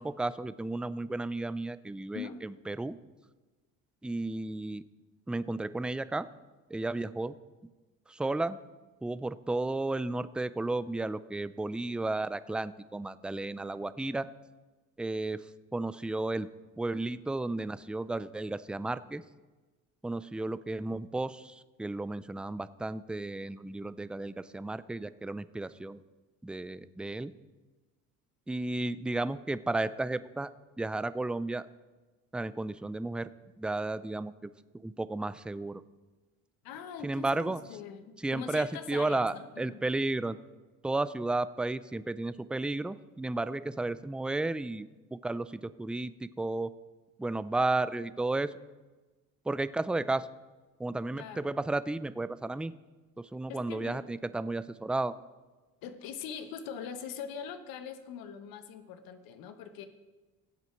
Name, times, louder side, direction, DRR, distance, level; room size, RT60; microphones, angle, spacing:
voice 1, 0.0-3.0 4.0-4.8 5.3-6.3 6.7-7.3 8.1-8.6 9.0-14.3 15.0-15.4 15.7-16.5 16.8-19.2 20.0-26.0 26.4-27.3 28.5-30.5 30.8-31.7 32.3-33.3 33.6-34.5 34.8-35.8 37.0-37.6 38.2-40.4 40.8-46.7 47.2-48.5 49.5-50.3 50.8-52.7 53.3-55.1, right 2 dB, 5° right, 15 dB, 0.4 m, -33 dB
voice 2, 36.6-39.8 51.1-51.6 53.5-54.1 55.8-59.9, left 7 dB, 70° left, 9 dB, 1.2 m, -42 dB
16.0 x 8.2 x 4.5 m, 1.2 s
supercardioid pair, 75°, 37 cm